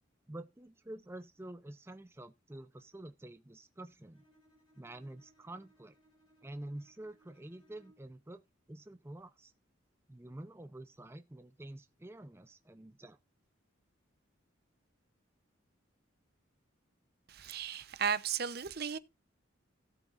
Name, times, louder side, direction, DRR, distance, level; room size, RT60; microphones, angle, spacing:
voice 1, 0.3-4.2 4.8-5.9 6.4-8.4 8.7-9.5 10.1-13.2, right 1 dB, 10° right, 0.5 m, -48 dB
Bowed string instrument, 4.1-8.2, right 1 dB, 25° left, 3.7 m, -68 dB
voice 2, 17.3-19.0, right 7 dB, 50° right, 0.7 m, -35 dB
17.0 x 7.9 x 2.5 m
head